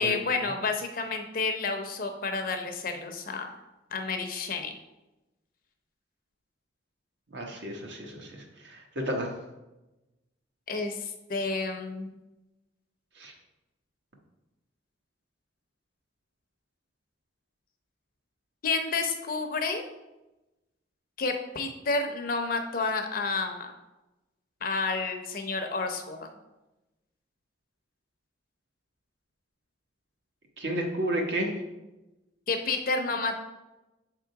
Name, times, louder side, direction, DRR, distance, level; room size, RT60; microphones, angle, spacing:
voice 1, 0.0-3.5 3.9-4.8 10.7-12.1 18.6-19.8 21.2-23.7 24.6-26.3 32.5-33.4, left 4 dB, 45° left, 5 dB, 0.7 m, -30 dB
voice 2, 7.3-9.3 13.2-13.3 30.6-31.5, right 1 dB, 70° right, 0 dB, 1.2 m, -32 dB
6.7 x 3.8 x 4.6 m, 1.0 s
head